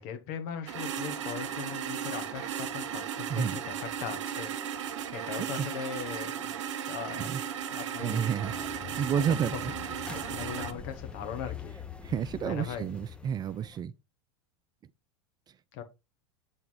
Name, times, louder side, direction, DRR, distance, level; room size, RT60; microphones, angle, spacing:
voice 1, 0.0-4.5 4.8-6.5 6.9-7.3 7.7-8.3 9.1-9.6 10.1-11.7 12.4-12.8 15.7-15.8, left 7 dB, 60° left, 1.6 m, -39 dB
sound 1, 0.7-10.7, right 9 dB, 80° right, 0.9 m, -36 dB
voice 2, 8.0-8.5 9.0-9.7 12.0-13.9, right 8 dB, 25° right, 0.4 m, -30 dB
sound 2, 8.4-13.8, left 6 dB, 5° left, 0.8 m, -44 dB
7.8 x 3.5 x 4.7 m
hypercardioid pair, 105°, 15 cm